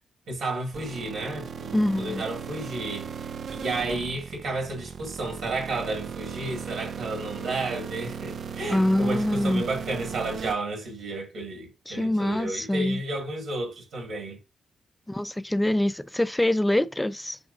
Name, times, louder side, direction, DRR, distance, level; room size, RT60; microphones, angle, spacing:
voice 1, 0.3-14.4, right 2 dB, 80° right, 1.7 m, -32 dB
sound 1, 0.7-10.5, right 6 dB, 60° right, 0.3 m, -37 dB
voice 2, 1.7-2.2 8.7-9.6 11.9-13.0 15.1-17.4, left 1 dB, 10° left, 0.4 m, -25 dB
6.0 x 2.9 x 2.5 m
cardioid pair, 65°, 0 cm